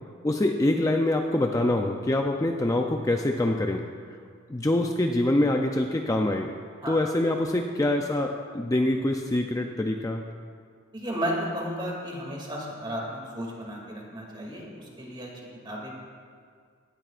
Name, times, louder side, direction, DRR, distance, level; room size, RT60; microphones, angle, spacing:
voice 1, 0.2-3.9 4.5-6.5 6.9-10.2, left 1 dB, 20° left, 3 dB, 0.5 m, -25 dB
voice 2, 10.9-16.0, equal, 25° right, -2 dB, 2.5 m, -34 dB
18.0 x 12.5 x 2.5 m, 2.1 s
head